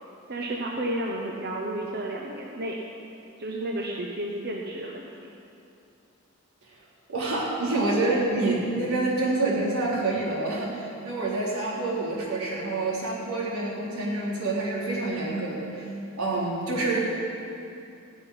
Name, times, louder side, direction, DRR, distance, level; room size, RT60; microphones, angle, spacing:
voice 1, 0.3-2.8 3.4-5.3, right 1 dB, 50° right, -1 dB, 1.0 m, -32 dB
voice 2, 7.1-15.9 16.2-17.0, right 2 dB, 85° right, -6 dB, 3.7 m, -27 dB
16.0 x 6.0 x 9.9 m, 2.7 s
head